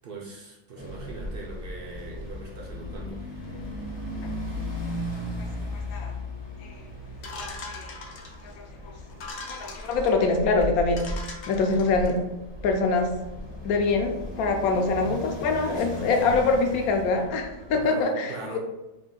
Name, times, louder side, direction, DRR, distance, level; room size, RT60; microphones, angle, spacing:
voice 1, 0.0-3.2 15.5-16.1 17.7-18.6, right 3 dB, 70° right, -2 dB, 0.5 m, -40 dB
sound 1, 0.8-17.8, left 1 dB, 25° left, 0.6 m, -37 dB
voice 2, 5.7-6.1 6.6-6.7 7.4-8.0 8.6-8.9 9.5-11.0 11.5-12.2 12.6-13.1 13.6-18.6, left 3 dB, 80° left, 4 dB, 1.0 m, -25 dB
sound 2, 7.2-8.5 9.1-10.1 10.6-10.7 11.0-12.2, left 3 dB, 60° left, 0.7 m, -41 dB
3.4 x 2.4 x 3.7 m, 1.0 s
omnidirectional pair, 1.5 m